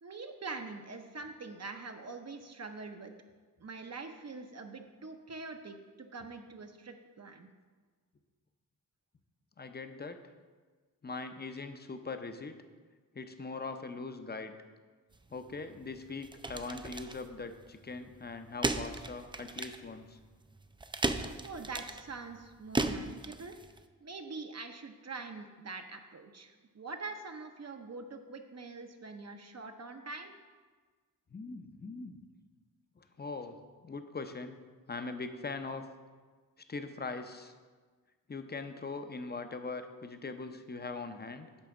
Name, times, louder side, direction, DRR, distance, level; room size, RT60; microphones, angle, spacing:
voice 1, 0.0-3.1 3.6-7.5 21.4-23.6 24.0-30.3, right 3 dB, 45° right, 5 dB, 0.7 m, -44 dB
voice 2, 9.6-10.2 11.0-12.6 13.1-14.5 15.3-20.2 31.3-32.2 33.0-33.6 33.8-34.6 34.9-35.8 36.7-37.5 38.3-41.5, left 3 dB, 30° left, 8 dB, 0.6 m, -41 dB
sound 1, 15.1-23.9, right 2 dB, 15° right, 0.4 m, -37 dB
9.9 x 3.4 x 7.0 m, 1.4 s
wide cardioid pair, 95°, 35 cm